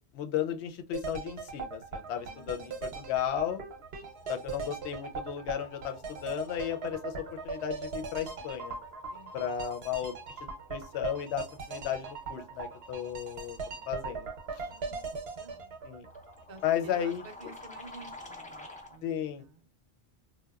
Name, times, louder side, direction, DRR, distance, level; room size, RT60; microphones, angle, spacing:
voice 1, 0.1-3.6 4.3-7.1 7.4-8.8 9.3-10.1 10.4-13.6 13.9-14.3 15.8-16.1 16.6-17.2 19.0-19.4, left 10 dB, 85° left, 5 dB, 0.8 m, -34 dB
sound 1, 0.9-16.9 17.2-17.3, right 4 dB, 75° right, 0.9 m, -40 dB
voice 2, 2.2-2.8 6.8-7.0 9.1-9.5 14.5-15.7 16.5-19.1 19.4-19.7, right 4 dB, 50° right, 5 dB, 0.6 m, -52 dB
sound 2, 3.7-19.0, left 2 dB, 10° left, 0.3 m, -52 dB
2.8 x 2.1 x 2.2 m, 0.30 s
omnidirectional pair, 1.1 m